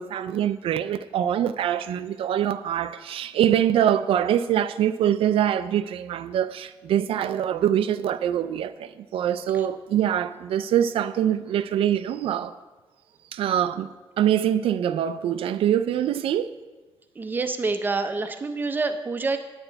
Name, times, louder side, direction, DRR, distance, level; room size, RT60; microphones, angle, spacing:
voice 1, 0.0-12.6 13.3-13.9 14.2-16.6, right 10 dB, 75° right, 0.3 m, -24 dB
voice 2, 17.2-19.4, right 3 dB, 20° right, 0.6 m, -27 dB
8.9 x 8.8 x 4.5 m
wide cardioid pair, 170°, 10 cm